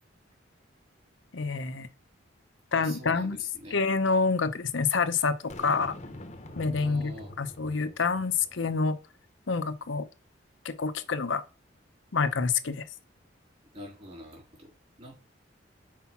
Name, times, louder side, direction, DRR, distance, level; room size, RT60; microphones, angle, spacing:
voice 1, 1.3-1.9 2.7-3.4 3.7-5.9 6.6-7.1 7.4-9.0 9.5-10.1 10.6-11.4 12.1-12.8, left 4 dB, 75° left, 0.7 m, -27 dB
voice 2, 2.7-3.8 6.8-7.3 13.7-14.7 15.0-15.2, equal, 35° right, 3.5 m, -45 dB
Boom, 5.5-8.8, left 1 dB, 35° left, 0.9 m, -45 dB
5.8 x 4.7 x 5.8 m
head